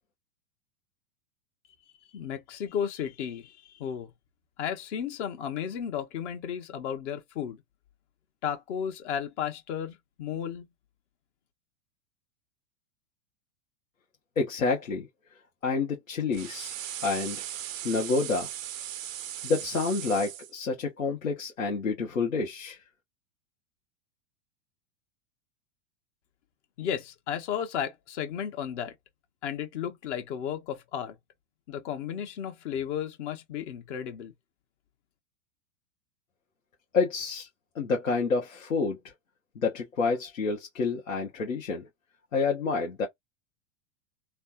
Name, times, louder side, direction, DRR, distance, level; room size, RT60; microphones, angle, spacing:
voice 1, 2.1-4.1 4.6-7.6 8.4-10.7 26.8-28.9 29.4-31.2 31.7-34.3, left 8 dB, 60° left, 1.2 m, -34 dB
voice 2, 14.4-15.1 15.6-17.4 17.8-18.5 19.4-22.8 36.9-37.5 37.7-39.0 39.5-41.9 42.3-43.1, left 4 dB, 90° left, 1.2 m, -28 dB
sound 1, 16.3-20.5, right 11 dB, 85° right, 0.6 m, -38 dB
3.3 x 2.2 x 2.6 m
hypercardioid pair, 100°, 39 cm